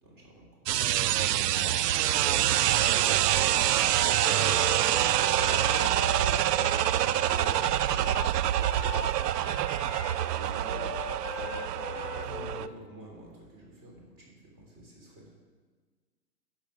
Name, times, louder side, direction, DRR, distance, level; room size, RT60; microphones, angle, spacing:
voice 1, 0.0-0.7 12.2-15.3, right 1 dB, 25° right, -2 dB, 3.2 m, -50 dB
sound 1, 0.7-12.7, right 12 dB, 75° right, 0.5 m, -26 dB
voice 2, 1.3-12.8, right 4 dB, 40° right, 6 dB, 0.8 m, -47 dB
Wind instrument woodwind instrument, 4.2-12.8, left 8 dB, 50° left, 0.9 m, -41 dB
8.7 x 6.8 x 7.4 m, 1.5 s
hypercardioid pair, 145°, 49 cm